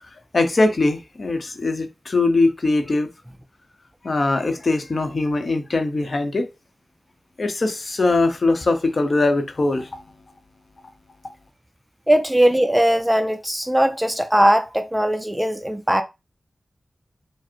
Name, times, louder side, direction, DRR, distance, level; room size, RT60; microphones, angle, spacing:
voice 1, 0.0-3.1 4.0-6.5 7.4-10.0, left 2 dB, 50° left, 0.8 m, -21 dB
voice 2, 12.1-16.0, equal, 10° right, 0.3 m, -19 dB
4.9 x 2.0 x 4.4 m
wide cardioid pair, 100°, 0 cm